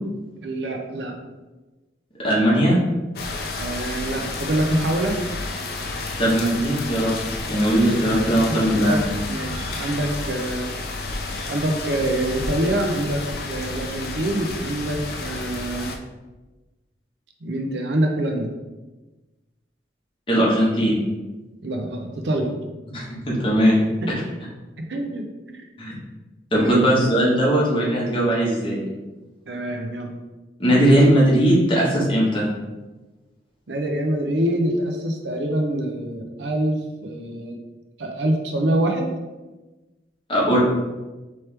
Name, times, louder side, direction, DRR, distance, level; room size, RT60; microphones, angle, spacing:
voice 1, 0.4-1.1 3.6-5.2 8.2-9.0 9.3-10.7 11.5-13.2 13.5-15.9 17.4-18.5 21.6-22.6 23.8-24.1 24.8-25.6 26.5-26.8 29.5-30.1 33.7-37.6 38.0-39.1, right 1 dB, 75° right, 3 dB, 0.6 m, -25 dB
voice 2, 2.2-2.8 6.2-7.1 7.4-9.0 20.3-21.0 22.9-23.7 25.8-25.9 26.5-28.8 30.6-32.4 40.3-40.6, right 1 dB, 30° left, -5 dB, 1.2 m, -19 dB
sound 1, 3.2-16.0, left 3 dB, 55° left, 0.4 m, -31 dB
4.4 x 3.1 x 3.3 m, 1.1 s
head